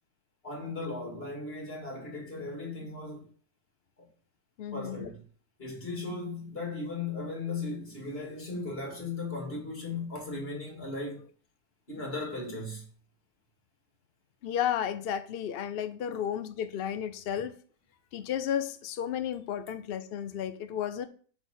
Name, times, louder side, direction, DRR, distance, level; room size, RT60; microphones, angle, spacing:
voice 1, 0.4-3.3 4.0-4.1 4.7-5.2 5.6-11.3 11.9-12.8, left 3 dB, 35° left, 2.9 m, -37 dB
voice 2, 4.6-5.1 14.4-17.5 18.1-21.1, left 9 dB, 70° left, 0.5 m, -33 dB
7.9 x 4.0 x 6.3 m
omnidirectional pair, 1.7 m